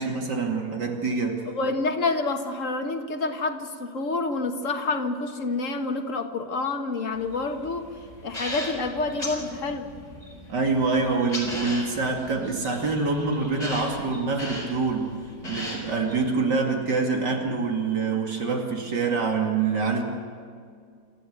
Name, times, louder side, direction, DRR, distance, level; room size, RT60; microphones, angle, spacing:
voice 1, 0.0-1.4 10.5-15.1 15.4-20.0, right 4 dB, 80° right, 1 dB, 3.1 m, -25 dB
voice 2, 1.5-7.9 8.2-9.9, left 3 dB, 50° left, 4 dB, 1.8 m, -28 dB
sound 1, 7.1-16.3, left 1 dB, 20° left, 4.8 m, -38 dB
27.0 x 14.5 x 8.2 m, 2.2 s
omnidirectional pair, 1.8 m